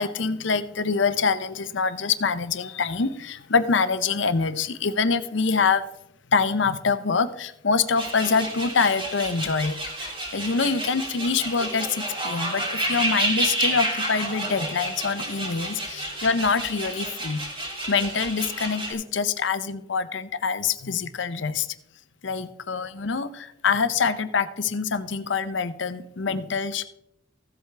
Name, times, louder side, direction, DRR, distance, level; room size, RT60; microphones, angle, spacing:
voice 1, 0.0-5.8 6.3-17.5 17.9-21.7 22.2-26.8, left 5 dB, 65° left, 13 dB, 0.7 m, -25 dB
sound 1, 8.0-18.9, right 1 dB, 25° right, 2.8 m, -30 dB
15.0 x 8.0 x 3.4 m, 0.80 s
head